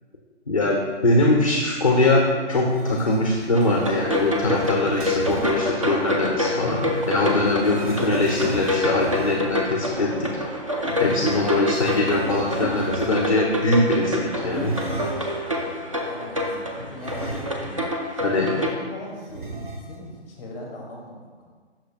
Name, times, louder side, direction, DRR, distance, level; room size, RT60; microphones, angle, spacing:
voice 1, 0.5-2.2 2.5-6.8 7.1-10.3 11.0-14.7 18.2-18.5, left 2 dB, 30° left, -1 dB, 0.4 m, -22 dB
sound 1, 2.7-5.6 6.4-9.6 10.8-13.4 14.5-15.4 17.0-17.9 18.2-18.3 19.3-20.2, right 2 dB, 45° right, 0.8 m, -37 dB
sound 2, 3.5-18.7, left 1 dB, 30° right, 0.4 m, -27 dB
voice 2, 14.4-17.8 18.1-19.5 19.8-21.5, left 1 dB, 10° left, -2 dB, 0.9 m, -39 dB
6.2 x 6.0 x 2.8 m, 1.5 s
hypercardioid pair, 160°, 35 cm